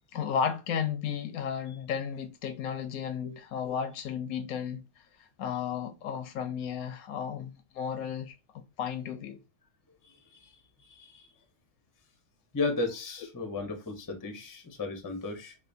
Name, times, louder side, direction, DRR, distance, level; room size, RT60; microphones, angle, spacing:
voice 1, 0.1-4.8 5.4-9.4, left 7 dB, 80° left, 1.1 m, -33 dB
voice 2, 10.9-11.3 12.5-15.5, left 3 dB, 20° left, 0.5 m, -34 dB
4.9 x 2.2 x 2.6 m
omnidirectional pair, 1.5 m